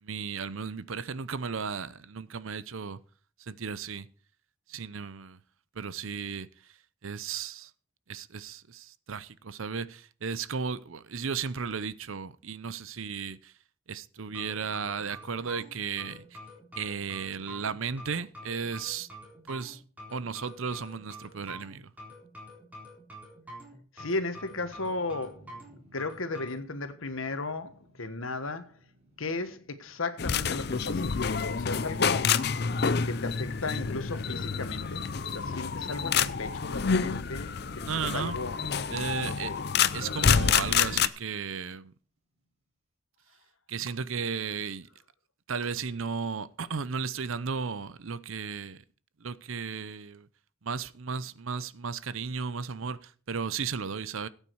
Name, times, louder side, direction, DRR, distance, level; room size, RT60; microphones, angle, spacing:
voice 1, 0.0-3.0 3.4-4.1 4.7-5.4 5.8-6.5 7.0-7.7 8.1-13.5 13.9-16.2 16.8-19.1 19.5-19.8 20.1-21.9 37.9-38.4 38.9-39.5 39.9-41.9 43.7-44.9 45.5-48.8 49.2-50.3 50.6-54.3, right 5 dB, 75° right, 0.7 m, -35 dB
sound 1, 14.3-26.6, equal, 5° right, 4.0 m, -47 dB
voice 2, 23.9-25.4 25.9-28.8 29.2-32.4 33.0-38.6 39.3-39.6, left 3 dB, 80° left, 1.5 m, -35 dB
sound 2, 24.5-41.7, equal, 30° right, 5.6 m, -57 dB
sound 3, 30.2-41.1, left 6 dB, 50° left, 0.5 m, -28 dB
16.5 x 8.9 x 4.8 m
head